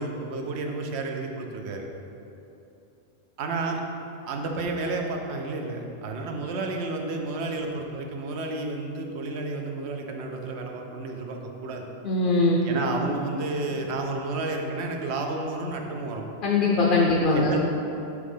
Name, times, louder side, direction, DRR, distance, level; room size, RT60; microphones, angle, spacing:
voice 1, 0.0-1.8 3.4-3.8 4.2-11.8 12.6-16.3 17.3-17.6, right 3 dB, 90° right, 2 dB, 0.9 m, -31 dB
voice 2, 12.0-12.6 16.4-17.6, left 3 dB, 60° left, -2 dB, 0.8 m, -21 dB
4.8 x 3.7 x 5.4 m, 2.9 s
omnidirectional pair, 1.1 m